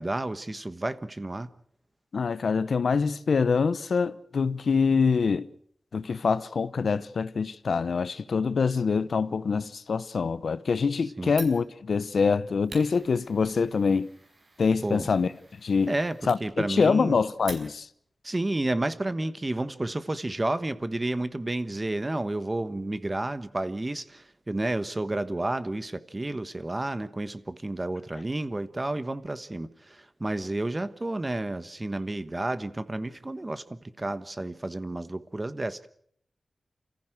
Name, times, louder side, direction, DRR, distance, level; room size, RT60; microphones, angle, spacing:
voice 1, 0.0-1.5 11.2-11.3 14.8-15.1 15.9-17.2 18.2-35.9, right 2 dB, 25° right, 1.2 m, -31 dB
voice 2, 2.1-5.5 5.9-14.1 14.6-15.3 15.6-15.9 16.3-17.9, left 5 dB, 80° left, 0.8 m, -25 dB
Fire, 11.3-18.1, right 2 dB, 55° right, 5.2 m, -47 dB
28.0 x 15.0 x 7.9 m
wide cardioid pair, 85°, 0 cm